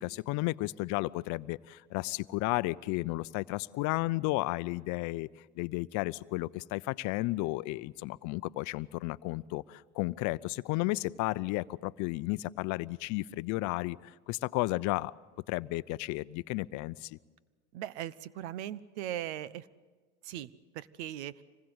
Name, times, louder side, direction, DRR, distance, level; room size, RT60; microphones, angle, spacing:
voice 1, 0.0-5.3 5.6-15.1 15.5-17.2, left 20 dB, 55° left, 17 dB, 0.7 m, -33 dB
voice 2, 17.7-19.7 20.2-21.4, right 12 dB, 70° right, 19 dB, 1.0 m, -39 dB
25.5 x 20.5 x 8.0 m, 1.4 s
supercardioid pair, 100°, 34 cm